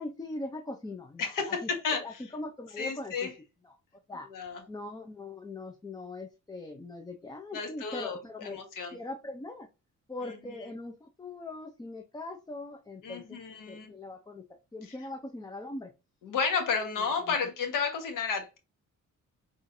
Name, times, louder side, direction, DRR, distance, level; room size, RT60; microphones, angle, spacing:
voice 1, 0.0-1.7 2.0-3.3 3.6-3.8 4.1-4.3 4.7-8.6 8.9-9.7 10.1-13.4 13.7-14.4 14.7-15.9 17.3-17.4, left 2 dB, 15° left, 4 dB, 0.5 m, -41 dB
voice 2, 1.2-2.2 2.8-3.3 4.3-4.6 7.5-8.9 10.2-10.6 13.0-13.9 14.9-15.0 16.2-18.6, left 5 dB, 85° left, 5 dB, 1.3 m, -32 dB
5.5 x 3.6 x 2.6 m, 0.28 s
cardioid pair, 125°, 31 cm